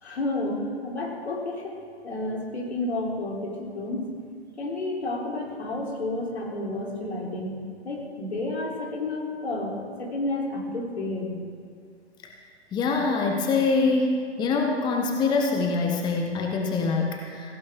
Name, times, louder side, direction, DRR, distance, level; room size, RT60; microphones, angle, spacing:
voice 1, 0.0-1.8 2.0-4.2 4.6-7.6 7.8-11.4, left 2 dB, 70° left, -2 dB, 3.5 m, -31 dB
voice 2, 12.7-17.5, left 4 dB, 15° left, 2 dB, 0.9 m, -24 dB
17.5 x 16.0 x 3.7 m, 2.2 s
figure-of-eight pair, 115°, 34 cm